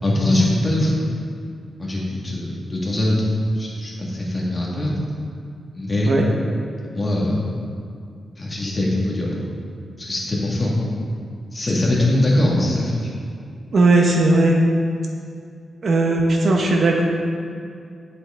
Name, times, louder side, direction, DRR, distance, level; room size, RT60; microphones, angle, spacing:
voice 1, 0.0-1.0 1.8-3.3 3.6-5.0 5.7-6.1 6.9-7.6 8.4-9.3 10.0-10.7 11.5-13.0, left 1 dB, 25° left, -5 dB, 2.1 m, -21 dB
voice 2, 13.7-14.6 15.8-17.0, right 2 dB, 50° right, 0 dB, 1.0 m, -17 dB
9.7 x 7.9 x 3.8 m, 2.3 s
wide cardioid pair, 115°, 0 cm